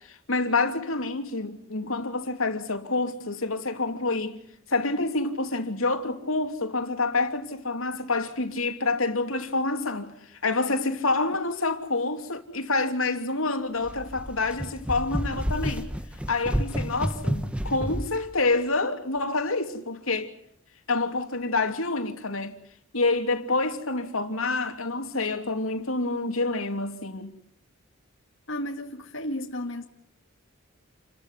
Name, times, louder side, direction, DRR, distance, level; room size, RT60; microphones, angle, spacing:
voice 1, 0.1-4.4 4.7-10.1 10.4-15.9 16.3-20.3 20.9-22.5 22.9-27.4, left 3 dB, 85° left, 3.0 m, -27 dB
sound 1, 13.8-18.2, equal, 5° right, 1.3 m, -30 dB
voice 2, 28.5-29.8, left 1 dB, 65° left, 2.1 m, -33 dB
29.0 x 14.5 x 9.8 m
head